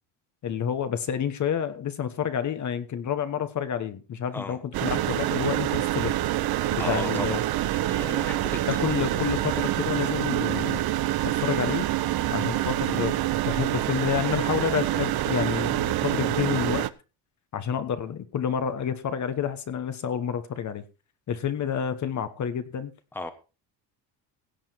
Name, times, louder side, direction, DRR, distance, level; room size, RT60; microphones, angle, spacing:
voice 1, 0.4-6.2 6.7-7.4 8.6-10.8 11.2-11.9 12.3-16.9 17.5-20.8 21.3-22.9, left 8 dB, 40° left, 1.2 m, -29 dB
sound 1, 4.7-16.9, right 14 dB, 55° right, 0.9 m, -26 dB
voice 2, 6.8-8.8 23.1-23.3, left 2 dB, 5° left, 1.1 m, -36 dB
17.0 x 7.4 x 4.6 m
cardioid pair, 135°, 45 cm